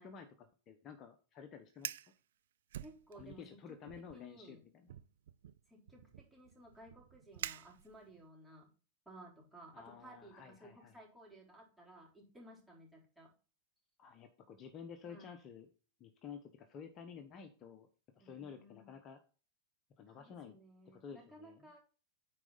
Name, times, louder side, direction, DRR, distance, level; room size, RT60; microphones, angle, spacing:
voice 1, 0.0-1.9 3.1-4.9 5.9-6.0 9.7-11.0 14.0-15.7 16.0-17.9 18.2-19.2 20.0-20.6 20.9-21.7, left 7 dB, 35° left, 6 dB, 1.0 m, -52 dB
Fire, 1.7-2.1 2.7-3.5 3.9-4.2 4.9-8.2, right 11 dB, 75° right, 0.4 m, -47 dB
voice 2, 2.8-4.6 5.7-8.7 9.1-13.3 15.0-15.3 18.2-18.9 20.1-21.8, right 1 dB, 5° right, -3 dB, 3.8 m, -57 dB
9.0 x 4.8 x 4.0 m, 0.37 s
hypercardioid pair, 105°, 0 cm